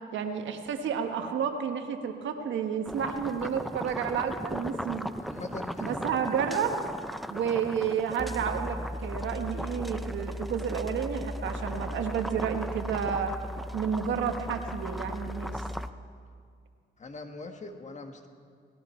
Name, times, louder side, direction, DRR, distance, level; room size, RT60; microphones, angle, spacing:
voice 1, 0.1-5.2 5.8-6.8 7.3-13.3 13.7-15.6, right 7 dB, 70° right, 5 dB, 1.5 m, -31 dB
sound 1, 2.9-15.9, equal, ahead, 0.5 m, -36 dB
voice 2, 5.2-6.0 17.0-18.3, left 3 dB, 35° left, 5 dB, 1.6 m, -42 dB
18.5 x 17.0 x 4.5 m, 2.1 s
cardioid pair, 90°, 20 cm